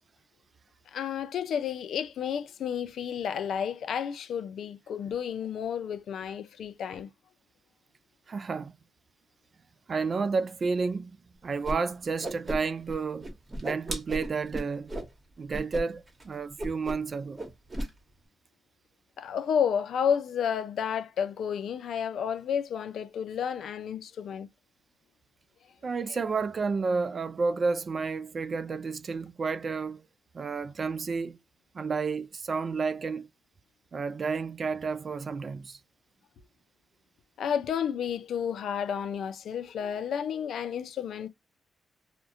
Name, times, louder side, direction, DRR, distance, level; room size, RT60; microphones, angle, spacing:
voice 1, 0.9-7.1 19.2-24.5 37.4-41.3, left 8 dB, 75° left, 0.4 m, -31 dB
voice 2, 8.3-8.7 9.9-11.2 11.4-13.3 13.6-14.9 15.4-17.4 25.8-30.1 30.3-31.4 31.7-33.3 33.9-35.8, right 4 dB, 50° right, 0.3 m, -31 dB
Whoosh swoosh swish, 11.6-11.8 12.0-13.0 13.2-15.1 15.5-16.2 16.6-17.1 17.4-17.9, right 1 dB, 30° right, 1.1 m, -35 dB
2.3 x 2.1 x 2.6 m
supercardioid pair, 60°, 0 cm